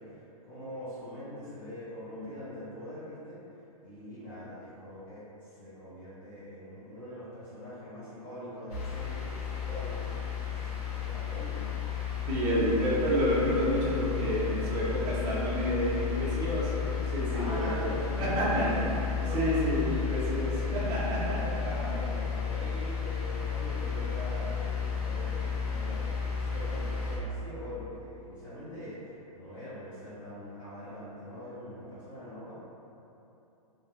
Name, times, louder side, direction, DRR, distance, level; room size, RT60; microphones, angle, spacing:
voice 1, 0.0-3.4 3.8-10.1 10.4-11.7 14.1-15.0 17.3-20.5 21.2-32.5, equal, 35° left, -14 dB, 0.8 m, -42 dB
sound 1, 8.7-27.2, left 6 dB, 75° left, 0.7 m, -33 dB
voice 2, 12.3-17.6 18.2-18.7 19.3-21.4 21.7-21.9, equal, 20° right, -8 dB, 0.5 m, -29 dB
2.3 x 2.0 x 3.0 m, 2.9 s
hypercardioid pair, 155°, 20 cm